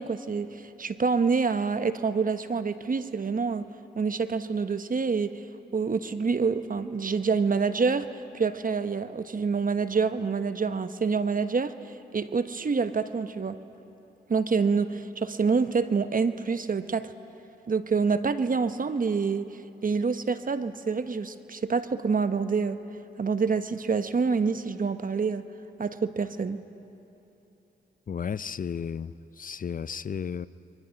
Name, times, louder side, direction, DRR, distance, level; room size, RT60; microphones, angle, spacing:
voice 1, 0.0-3.7 4.0-5.4 5.7-11.7 12.1-13.6 14.3-17.1 17.7-19.5 19.8-22.8 23.2-25.4 25.8-26.6, right 5 dB, 45° right, 11 dB, 1.1 m, -27 dB
voice 2, 28.1-30.5, left 7 dB, 45° left, 16 dB, 0.6 m, -33 dB
29.5 x 23.5 x 5.9 m, 2.9 s
supercardioid pair, 45°, 19 cm